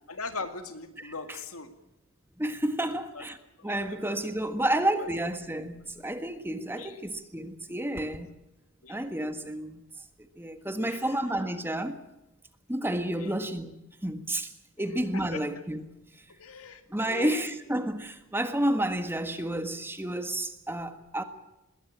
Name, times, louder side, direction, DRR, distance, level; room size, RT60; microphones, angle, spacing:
voice 1, 0.1-1.7 3.1-3.3 3.6-4.5 6.7-7.0 8.8-9.1 10.9-11.1 13.2-13.3 15.1-15.4 16.4-17.5, left 4 dB, 90° left, 2.3 m, -40 dB
voice 2, 1.0-1.4 2.4-3.4 3.6-8.3 8.9-9.8 10.4-12.0 12.7-14.5 14.8-15.9 16.9-21.2, right 1 dB, 10° right, 1.6 m, -30 dB
21.0 x 17.0 x 8.7 m
head